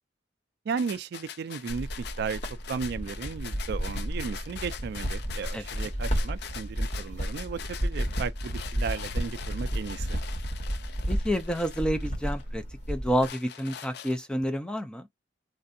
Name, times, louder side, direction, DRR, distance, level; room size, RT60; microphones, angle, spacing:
voice 1, 0.7-2.4 2.7-10.2, right 6 dB, 60° right, 0.3 m, -35 dB
sound 1, 0.8-12.4 12.9-14.5, left 8 dB, 60° left, 0.4 m, -43 dB
sound 2, 1.7-13.3, equal, 40° left, 1.5 m, -32 dB
voice 2, 5.5-5.9 11.1-12.6 12.9-15.1, equal, 5° left, 0.5 m, -29 dB
3.2 x 2.6 x 2.6 m
head